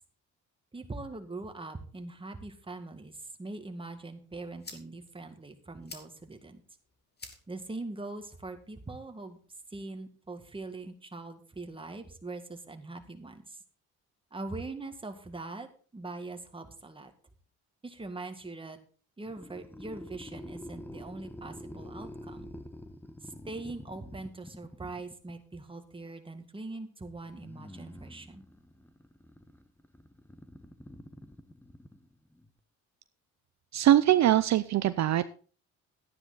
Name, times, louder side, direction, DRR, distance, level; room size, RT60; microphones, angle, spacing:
voice 1, 0.7-6.6 7.5-9.4 9.7-13.6 14.3-15.7 15.9-17.1 17.8-18.8 19.2-22.5 23.2-28.4, right 2 dB, 15° right, 6 dB, 1.9 m, -42 dB
sound 1, 4.0-10.0, left 3 dB, 35° left, 2.7 m, -54 dB
sound 2, 19.2-25.4 27.2-32.5, left 1 dB, 5° left, 1.2 m, -47 dB
voice 2, 33.7-35.3, right 12 dB, 65° right, 13 dB, 0.6 m, -22 dB
12.0 x 9.9 x 4.1 m, 0.40 s
cardioid pair, 90°, 30 cm